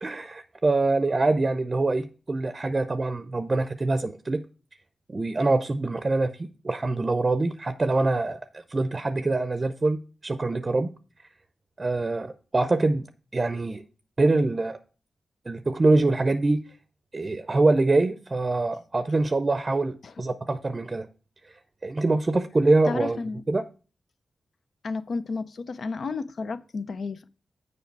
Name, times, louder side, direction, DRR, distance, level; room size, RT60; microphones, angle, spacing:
voice 1, 0.0-4.4 5.1-10.9 11.8-13.0 13.3-13.8 14.2-14.8 15.5-16.6 17.1-21.1 21.8-23.2 23.5-23.6, right 2 dB, 40° right, 0.5 m, -24 dB
voice 2, 22.9-23.4 24.8-27.3, left 4 dB, 70° left, 0.5 m, -32 dB
7.1 x 4.8 x 4.6 m
cardioid pair, 45°, 0 cm